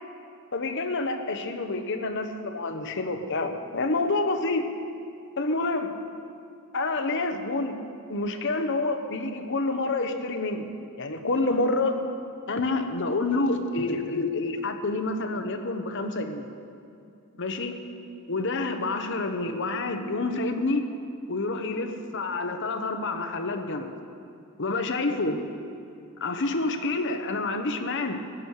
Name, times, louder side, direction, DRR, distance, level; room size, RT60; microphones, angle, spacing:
voice 1, 0.5-4.7 5.4-6.0 6.7-7.8 8.1-10.7 11.0-12.0 12.5-16.5 17.4-17.7 18.3-20.8 21.3-23.9 24.6-25.4 26.2-28.2, left 2 dB, 60° left, 6 dB, 1.0 m, -28 dB
15.0 x 6.5 x 9.6 m, 2.5 s
head